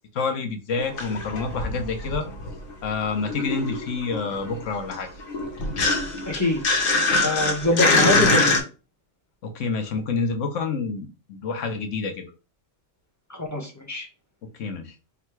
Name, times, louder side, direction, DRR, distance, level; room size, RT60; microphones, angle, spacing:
voice 1, 0.1-2.3 2.8-5.1 9.4-12.3 14.6-14.9, left 4 dB, 70° left, 6 dB, 1.1 m, -28 dB
sound 1, 0.8-2.7 3.0-8.6, left 3 dB, 90° left, 1.4 m, -24 dB
voice 2, 6.3-6.6 7.2-8.6 13.3-14.1, left 1 dB, 15° left, 1 dB, 0.8 m, -24 dB
3.7 x 2.3 x 4.4 m, 0.32 s
omnidirectional pair, 1.4 m